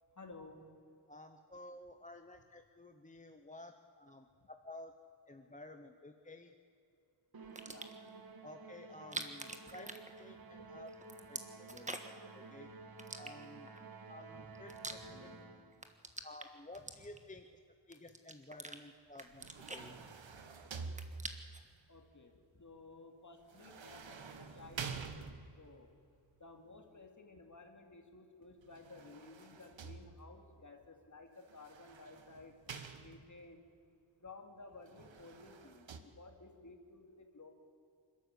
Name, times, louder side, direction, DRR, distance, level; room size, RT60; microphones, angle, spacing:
voice 1, 0.2-0.7 7.6-7.9 10.6-10.7 15.0-15.8 20.6-20.8 21.9-25.9 26.4-32.5 33.0-33.6 34.2-37.5, left 3 dB, 40° left, 4 dB, 2.6 m, -55 dB
voice 2, 1.1-4.9 5.3-6.5 8.4-10.9 11.3-12.7 13.2-13.7 14.1-15.3 16.2-17.5 17.9-20.0, left 2 dB, 15° left, 6 dB, 0.9 m, -53 dB
Musical instrument, 7.3-15.8, right 4 dB, 50° right, 1.6 m, -53 dB
sound 1, 7.4-8.1 8.9-10.6 10.9-12.3 13.0-13.8 14.3-15.4 15.7-17.4 17.9-18.8 19.1-20.5 20.8-21.7, right 2 dB, 15° right, 1.5 m, -46 dB
sound 2, 19.2-21.6 23.5-25.8 28.6-30.5 31.5-33.5 34.8-36.0, right 5 dB, 75° right, 1.5 m, -48 dB
27.0 x 12.5 x 8.3 m, 2.5 s
wide cardioid pair, 115°, 45 cm